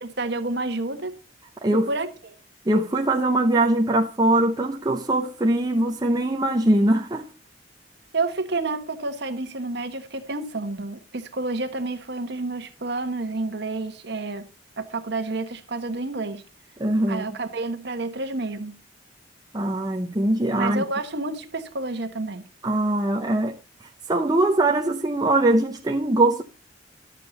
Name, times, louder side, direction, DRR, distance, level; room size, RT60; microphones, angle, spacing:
voice 1, 0.0-1.1 1.9-2.3 8.1-14.5 14.8-16.4 17.1-18.8 20.5-22.5, right 2 dB, 60° right, 1.3 m, -29 dB
voice 2, 2.7-7.3 16.8-17.3 19.5-20.8 22.6-23.5 24.1-26.4, right 1 dB, 20° right, 0.7 m, -21 dB
11.5 x 7.5 x 4.0 m
head